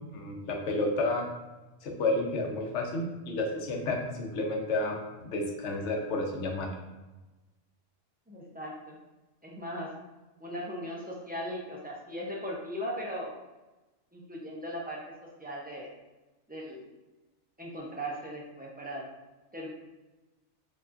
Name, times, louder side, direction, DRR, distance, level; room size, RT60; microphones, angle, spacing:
voice 1, 0.1-1.3 1.8-5.0 5.2-6.7, left 2 dB, 70° left, 1 dB, 1.0 m, -31 dB
voice 2, 8.3-9.0 9.4-9.9 10.4-13.3 14.1-15.0 15.4-15.9 16.5-16.9 17.6-19.0 19.5-19.7, equal, 15° right, -3 dB, 0.3 m, -38 dB
4.5 x 2.9 x 2.5 m, 1.1 s
omnidirectional pair, 1.2 m